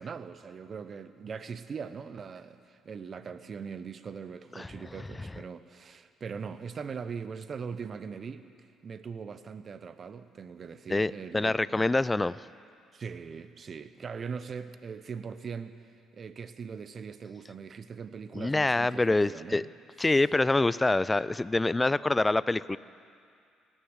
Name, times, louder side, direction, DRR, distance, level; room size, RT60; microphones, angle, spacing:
voice 1, 0.0-11.9 12.9-19.7, right 6 dB, 45° right, 12 dB, 0.9 m, -41 dB
voice 2, 10.9-12.4 18.3-19.6 20.0-22.8, left 2 dB, 20° left, 18 dB, 0.4 m, -25 dB
17.5 x 10.0 x 8.0 m, 2.3 s
supercardioid pair, 60°, 0 cm